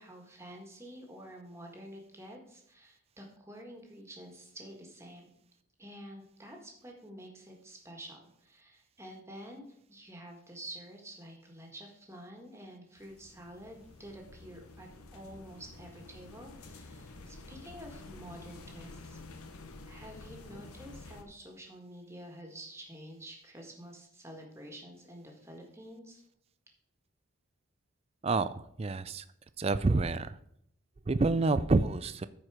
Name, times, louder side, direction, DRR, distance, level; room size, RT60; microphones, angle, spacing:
voice 1, 0.0-5.2 5.8-19.2 19.8-26.2, right 1 dB, 10° right, 1 dB, 1.6 m, -49 dB
sound 1, 13.0-21.2, left 2 dB, 85° left, 1.0 m, -50 dB
voice 2, 28.2-29.2 29.6-30.4 31.1-32.3, right 3 dB, 25° right, 14 dB, 0.4 m, -28 dB
14.0 x 4.7 x 4.9 m, 0.73 s
head